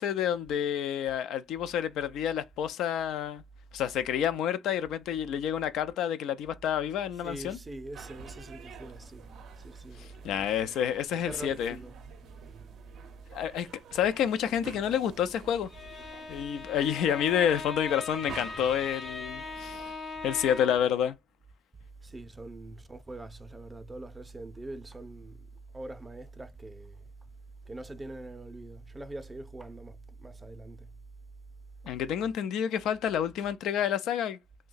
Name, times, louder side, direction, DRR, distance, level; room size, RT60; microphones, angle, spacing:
voice 1, 0.0-3.4 3.7-7.6 10.0-11.8 13.3-15.7 16.3-19.9 20.2-21.2 31.8-34.4, left 9 dB, 90° left, 0.4 m, -29 dB
voice 2, 7.2-9.2 9.6-10.8 11.2-11.9 20.2-20.3 22.0-25.5 25.7-27.0 27.7-30.9 31.9-32.0, right 2 dB, 20° right, 0.4 m, -43 dB
sound 1, 7.9-19.9, right 7 dB, 75° right, 0.5 m, -49 dB
Bowed string instrument, 15.6-20.9, left 4 dB, 45° left, 0.7 m, -40 dB
2.7 x 2.1 x 3.8 m
cardioid pair, 130°, 0 cm